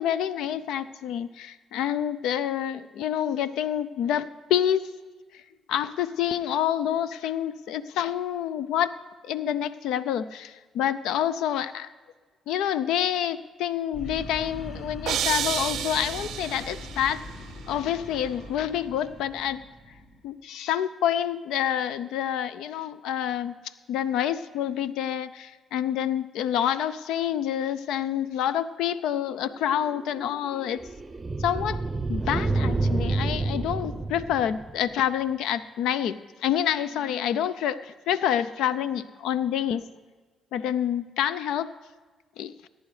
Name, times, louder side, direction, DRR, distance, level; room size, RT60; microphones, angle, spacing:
voice 1, 0.0-4.8 5.7-8.9 9.2-11.9 12.5-17.2 17.7-19.6 20.2-23.6 23.9-30.8 31.4-31.8 32.1-37.8 38.1-39.8 40.5-41.7 42.4-42.7, left 10 dB, 90° left, 15 dB, 0.4 m, -27 dB
sound 1, 13.9-20.2, left 1 dB, 55° left, 1.6 m, -41 dB
sound 2, 15.1-17.1, right 10 dB, 75° right, 0.4 m, -30 dB
sound 3, 29.4-35.0, right 3 dB, 25° right, 0.6 m, -29 dB
18.5 x 10.0 x 3.2 m, 1.4 s
cardioid pair, 90°, 0 cm